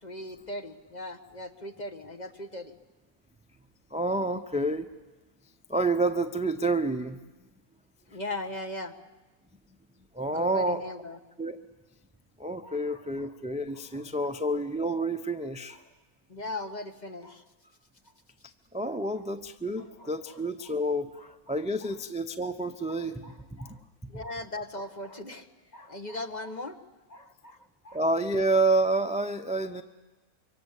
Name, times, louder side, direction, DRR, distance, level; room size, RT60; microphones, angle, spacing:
voice 1, 0.0-2.8 8.1-8.9 10.3-11.2 12.6-13.0 13.9-14.0 16.3-17.4 18.8-18.9 20.0-20.1 21.2-21.3 22.9-23.8 24.1-25.5 25.7-26.8 27.1-27.6 27.8-28.0, left 1 dB, 30° left, 7 dB, 1.3 m, -39 dB
voice 2, 3.9-4.9 5.7-7.2 10.1-10.8 11.4-11.6 12.4-15.8 18.7-21.1 21.5-23.2 23.5-23.8 27.9-29.8, right 2 dB, 5° right, 9 dB, 0.5 m, -28 dB
26.5 x 24.0 x 8.3 m, 1.1 s
omnidirectional pair, 1.6 m